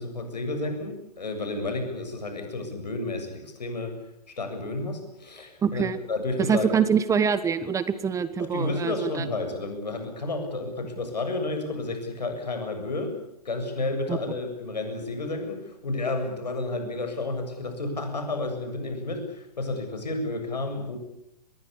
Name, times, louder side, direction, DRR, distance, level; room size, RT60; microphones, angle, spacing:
voice 1, 0.0-3.9 4.4-6.7 8.4-13.2 13.4-21.0, left 2 dB, 75° left, 6 dB, 7.5 m, -31 dB
voice 2, 5.6-6.0 6.5-9.2 14.1-14.2, right 7 dB, 15° right, 15 dB, 1.3 m, -25 dB
25.5 x 21.5 x 8.6 m, 0.82 s
figure-of-eight pair, 110°, 21 cm